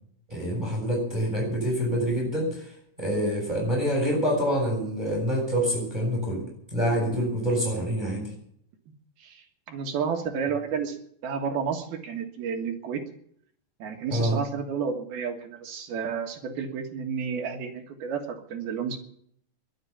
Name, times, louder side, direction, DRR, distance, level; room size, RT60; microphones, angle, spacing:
voice 1, 0.3-2.7 3.0-6.4 6.7-8.3 14.1-14.4, equal, 10° right, -1 dB, 7.4 m, -26 dB
voice 2, 9.2-13.0 13.8-19.0, right 6 dB, 65° right, 3 dB, 3.4 m, -31 dB
23.0 x 9.0 x 7.1 m, 0.67 s
omnidirectional pair, 5.0 m